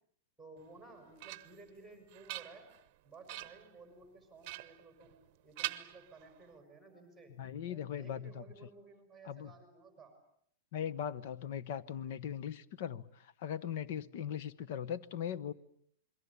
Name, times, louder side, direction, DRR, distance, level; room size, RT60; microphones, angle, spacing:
voice 1, 0.4-2.7 3.0-7.4 7.7-10.2, right 3 dB, ahead, 5.7 m, -56 dB
sound 1, 0.7-1.7 2.1-2.9 3.3-3.7 4.4-5.3 5.6-6.5, right 16 dB, 35° right, 1.1 m, -44 dB
voice 2, 7.4-8.4 9.3-9.5 10.7-15.5, left 9 dB, 50° left, 1.1 m, -39 dB
28.0 x 22.0 x 8.4 m
supercardioid pair, 165°, 0 cm